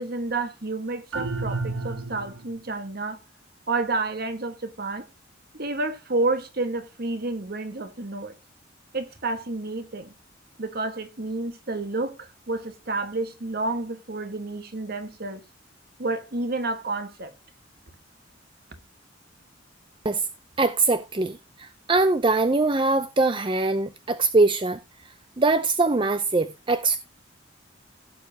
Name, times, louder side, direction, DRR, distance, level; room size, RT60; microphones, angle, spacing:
voice 1, 0.0-3.2 3.7-5.1 5.5-8.3 8.9-10.1 10.6-15.4 16.0-17.3, right 2 dB, 50° right, 1.5 m, -30 dB
sound 1, 1.1-2.6, right 3 dB, 80° right, 1.1 m, -31 dB
voice 2, 20.6-24.8 25.4-27.0, right 3 dB, 25° right, 0.5 m, -22 dB
16.0 x 7.1 x 2.8 m
head